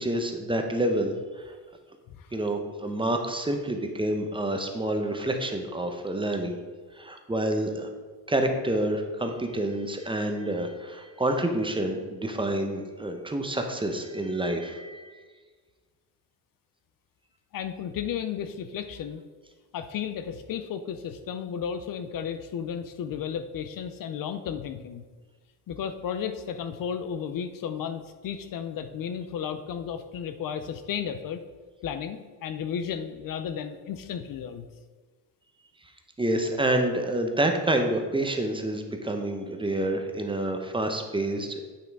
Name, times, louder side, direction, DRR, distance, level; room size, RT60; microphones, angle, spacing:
voice 1, 0.0-1.5 2.3-6.6 7.0-7.9 8.3-15.1 36.2-41.6, right 1 dB, 10° right, 4 dB, 0.8 m, -28 dB
voice 2, 17.5-19.2 19.7-25.0 25.7-31.4 31.8-34.7, left 8 dB, 50° left, 9 dB, 0.6 m, -33 dB
8.6 x 5.8 x 4.6 m, 1.4 s
cardioid pair, 130°, 42 cm